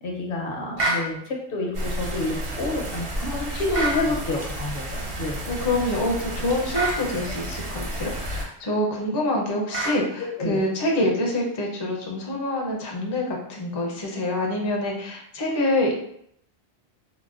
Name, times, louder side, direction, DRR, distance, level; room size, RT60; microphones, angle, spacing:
voice 1, 0.0-5.5 10.2-10.6, left 2 dB, 65° left, 0 dB, 0.8 m, -29 dB
sound 1, 0.8-1.1 3.7-4.0 6.7-7.0 9.7-10.0, right 2 dB, 65° right, 1.1 m, -25 dB
sound 2, 1.7-8.4, right 1 dB, 45° right, 0.4 m, -32 dB
voice 2, 5.5-15.9, left 1 dB, 35° left, -1 dB, 0.4 m, -26 dB
3.9 x 2.1 x 2.4 m, 0.70 s
omnidirectional pair, 1.1 m